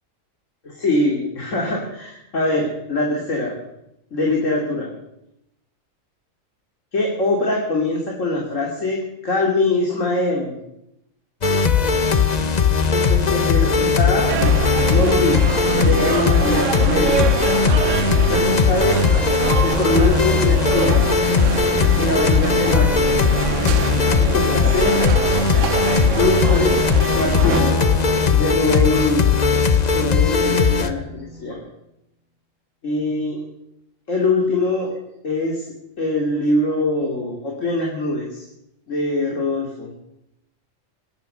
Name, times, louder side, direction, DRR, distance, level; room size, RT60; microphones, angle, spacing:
voice 1, 0.6-3.6 4.1-4.9 6.9-10.5 12.9-14.3 14.9-15.4 15.8-17.3 18.3-19.0 19.6-21.0 22.0-23.1 24.2-25.0 26.2-26.8 27.2-27.8 28.3-29.3 29.9-31.6 32.8-33.4 34.1-34.9 35.2-35.6 36.0-38.5 38.9-39.9, left 2 dB, 70° left, -1 dB, 2.9 m, -22 dB
sound 1, 11.4-30.9, left 5 dB, 35° left, 0.9 m, -18 dB
sound 2, 14.3-27.6, right 8 dB, 70° right, 1.1 m, -25 dB
sound 3, 27.4-31.5, right 1 dB, 10° right, 5.5 m, -33 dB
21.0 x 9.9 x 6.7 m, 0.84 s
omnidirectional pair, 1.3 m